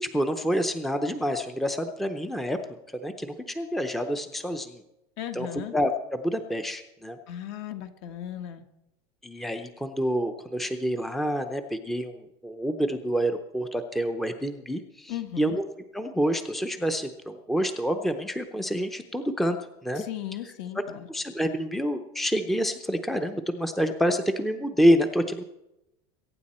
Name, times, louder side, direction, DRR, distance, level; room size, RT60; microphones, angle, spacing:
voice 1, 0.0-2.6 3.0-4.8 5.3-5.5 5.7-7.2 9.2-15.6 15.9-19.6 19.8-20.0 21.1-25.4, equal, ahead, 7 dB, 0.6 m, -27 dB
voice 2, 5.2-5.7 7.3-8.6 15.1-15.6 19.9-21.1, left 11 dB, 55° left, 7 dB, 1.5 m, -36 dB
22.5 x 9.3 x 4.3 m, 0.91 s
supercardioid pair, 160°, 15 cm